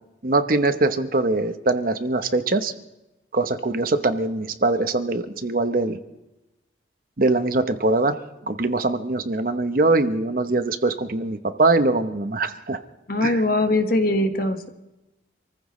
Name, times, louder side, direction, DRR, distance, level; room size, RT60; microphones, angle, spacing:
voice 1, 0.2-2.7 3.3-6.0 7.2-8.2 8.5-12.8 13.2-13.4, right 2 dB, 50° right, 10 dB, 0.9 m, -22 dB
voice 2, 13.1-14.7, left 2 dB, 50° left, 6 dB, 1.5 m, -21 dB
28.0 x 15.0 x 3.2 m, 0.98 s
head